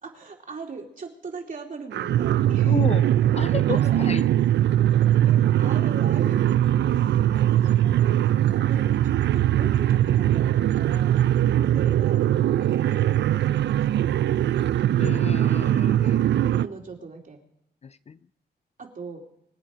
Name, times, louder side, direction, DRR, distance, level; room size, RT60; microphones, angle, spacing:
voice 1, 0.0-2.8 3.4-4.1 5.2-11.1 11.6-12.2 12.7-14.6 16.5-17.4 18.8-19.2, right 4 dB, 45° right, 3.0 m, -40 dB
sound 1, 1.9-16.7, right 12 dB, 75° right, 0.5 m, -21 dB
voice 2, 2.7-3.1 3.3-4.2 15.0-16.6 17.8-18.2, left 6 dB, 35° left, 0.4 m, -32 dB
24.5 x 8.7 x 5.0 m
cardioid pair, 80°, 18 cm